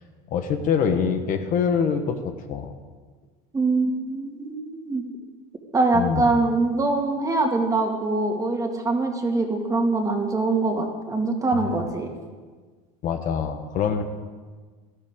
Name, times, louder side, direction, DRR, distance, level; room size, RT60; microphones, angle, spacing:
voice 1, 0.3-2.7 5.9-6.3 11.5-11.7 13.0-14.0, left 7 dB, 50° left, 6 dB, 1.2 m, -24 dB
voice 2, 3.5-5.0 5.7-12.1, right 3 dB, 20° right, 2 dB, 2.0 m, -23 dB
17.0 x 12.5 x 3.7 m, 1.5 s
supercardioid pair, 110°, 18 cm